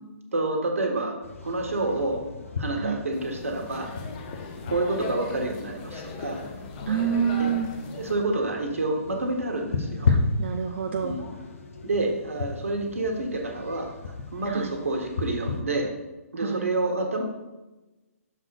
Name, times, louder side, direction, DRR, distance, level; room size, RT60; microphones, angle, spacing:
voice 1, 0.3-1.2 1.4-2.2 2.6-3.9 4.7-6.4 7.4-7.5 7.9-10.1 11.0-11.3 11.8-13.9 14.3-15.9 16.3-17.2, right 2 dB, 60° right, 2 dB, 1.3 m, -28 dB
sound 1, 1.2-15.6, left 4 dB, 60° left, 0.9 m, -34 dB
sound 2, 3.1-8.2, left 4 dB, 30° left, 0.8 m, -38 dB
voice 2, 6.9-7.7 10.1-11.2 14.5-14.7 16.4-16.7, right 7 dB, 45° right, 5 dB, 0.4 m, -28 dB
6.6 x 3.6 x 4.7 m, 1.1 s
figure-of-eight pair, 130°, 8 cm